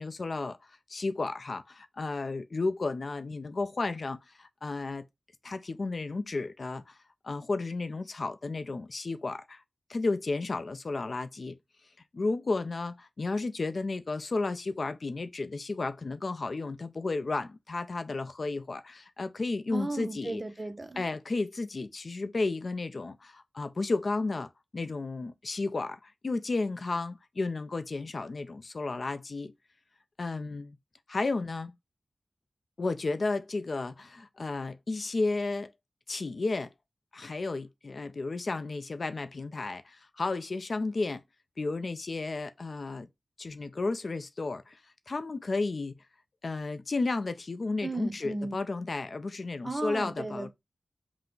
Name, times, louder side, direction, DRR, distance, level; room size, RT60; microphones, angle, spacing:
voice 1, 0.0-5.1 5.4-7.0 7.2-9.6 9.9-11.6 12.1-20.4 21.0-29.5 30.2-30.8 31.1-31.7 32.8-35.7 36.1-36.7 37.1-41.2 41.6-43.1 43.4-44.8 45.1-46.0 46.4-50.5, left 3 dB, 55° left, 0.4 m, -33 dB
voice 2, 19.7-21.0 47.8-48.6 49.6-50.5, right 2 dB, 30° right, 0.5 m, -35 dB
5.6 x 2.0 x 3.7 m
wide cardioid pair, 95°, 0 cm